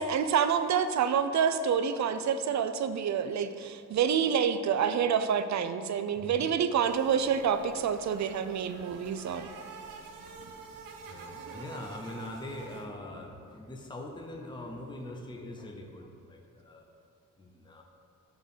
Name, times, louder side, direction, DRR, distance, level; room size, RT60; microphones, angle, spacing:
voice 1, 0.0-9.5, right 7 dB, 60° right, 10 dB, 0.5 m, -28 dB
voice 2, 6.1-6.5 11.1-16.8 17.4-17.8, left 1 dB, 15° left, 1 dB, 0.7 m, -42 dB
sound 1, 6.8-12.9, right 4 dB, 80° right, 0.9 m, -47 dB
6.5 x 4.7 x 4.9 m, 2.7 s
cardioid pair, 80°, 32 cm